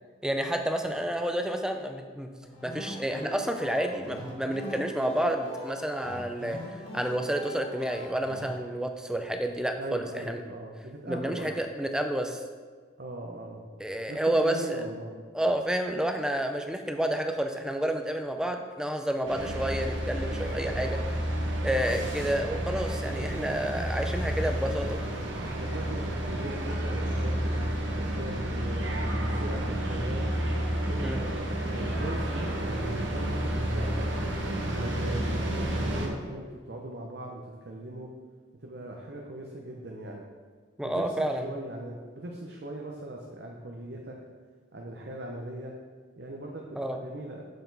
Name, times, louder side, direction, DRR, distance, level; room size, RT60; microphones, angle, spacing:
voice 1, 0.2-2.3 2.6-10.4 11.1-12.4 13.8-14.8 15.3-21.2 21.6-25.0 31.0-31.3 40.8-41.5 46.8-47.0, right 1 dB, 5° right, 5 dB, 0.4 m, -30 dB
sound 1, 2.4-8.5, equal, 40° left, 2.2 m, -41 dB
voice 2, 9.8-11.5 13.0-13.6 14.1-15.1 25.5-28.9 29.2-30.3 30.7-34.1 34.7-38.1 38.6-40.2 40.8-44.2 44.7-45.7 46.2-47.5, right 1 dB, 60° right, 0 dB, 0.7 m, -40 dB
sound 2, 19.3-36.1, right 1 dB, 80° right, 1.1 m, -30 dB
6.6 x 6.3 x 4.0 m, 1.5 s
head